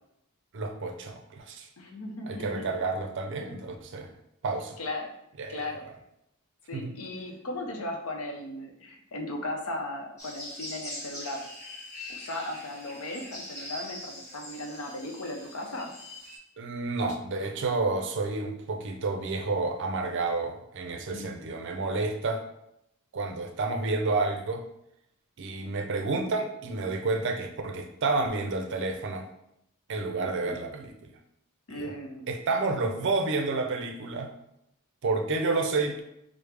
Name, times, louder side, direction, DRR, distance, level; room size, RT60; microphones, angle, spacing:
voice 1, 0.5-1.7 2.3-4.1 4.4-4.8 5.4-5.6 6.7-6.9 16.6-22.4 23.1-24.6 25.4-29.3 29.9-31.1 31.7-31.9 32.3-34.3 35.0-36.0, right 3 dB, 55° right, 4 dB, 0.5 m, -30 dB
voice 2, 1.8-2.8 4.8-5.1 5.5-5.9 6.7-11.5 12.1-15.9 21.1-21.5 30.2-30.6 31.7-32.3, left 1 dB, 70° left, 3 dB, 0.6 m, -37 dB
sound 1, 10.2-16.4, left 1 dB, 15° left, 0.9 m, -42 dB
4.8 x 2.0 x 3.3 m, 0.80 s
head